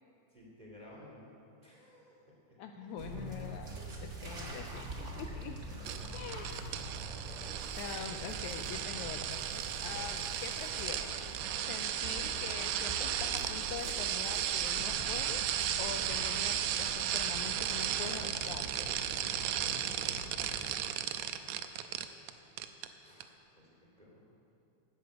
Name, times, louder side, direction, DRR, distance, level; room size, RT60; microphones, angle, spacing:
voice 1, 0.3-1.3 1.6-3.0 4.5-5.0 23.0-24.2, left 1 dB, 15° right, -4 dB, 2.3 m, -56 dB
voice 2, 2.6-3.8 4.0-5.6 6.1-6.6 7.8-11.2 11.7-15.4 15.8-19.0, left 7 dB, 80° left, 6 dB, 1.8 m, -44 dB
sound 1, 3.0-20.7, right 1 dB, 40° right, 1.1 m, -44 dB
sound 2, 5.8-22.3 22.6-22.9 23.2-23.3, right 10 dB, 80° right, 1.7 m, -35 dB
12.0 x 10.0 x 8.0 m, 2.8 s
omnidirectional pair, 3.7 m